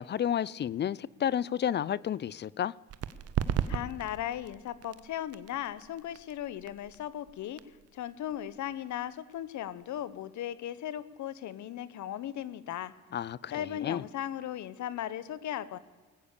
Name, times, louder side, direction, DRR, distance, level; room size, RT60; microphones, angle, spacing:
voice 1, 0.0-2.7 13.1-14.0, left 9 dB, 35° left, 0.4 m, -31 dB
sound 1, 2.9-10.2, right 9 dB, 55° right, 0.8 m, -38 dB
voice 2, 3.7-7.6 7.9-12.9 13.5-15.8, left 11 dB, 70° left, 0.9 m, -37 dB
19.5 x 8.6 x 6.6 m
cardioid pair, 90°, 30 cm